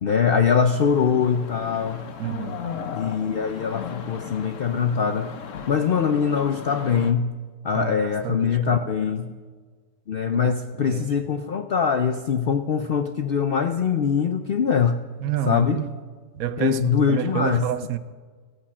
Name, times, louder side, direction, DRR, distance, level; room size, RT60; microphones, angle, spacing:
voice 1, 0.0-2.1 2.9-5.3 5.7-7.3 7.6-9.4 10.1-15.0 15.5-15.8 16.6-17.6, left 6 dB, 75° left, 0.5 m, -23 dB
sound 1, 0.7-7.1, left 6 dB, 55° left, 1.2 m, -36 dB
voice 2, 2.2-2.6 7.7-8.9 10.3-11.1 15.2-15.9 16.3-18.0, right 10 dB, 65° right, 1.0 m, -29 dB
15.5 x 10.0 x 7.4 m
omnidirectional pair, 1.8 m